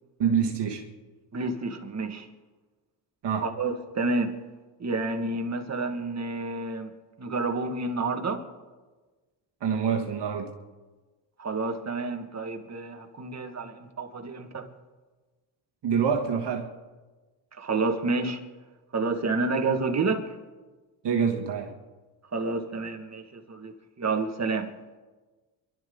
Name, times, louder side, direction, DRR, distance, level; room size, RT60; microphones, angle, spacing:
voice 1, 0.2-0.9 3.2-3.5 9.6-10.5 15.8-16.7 21.0-21.8, right 7 dB, 55° right, 1.7 m, -26 dB
voice 2, 1.3-2.3 3.4-4.4 4.8-6.9 7.2-8.5 11.4-14.7 17.6-18.4 18.9-20.4 22.3-24.7, right 3 dB, 35° right, 2.0 m, -29 dB
28.0 x 12.0 x 4.0 m
cardioid pair, 90°, 48 cm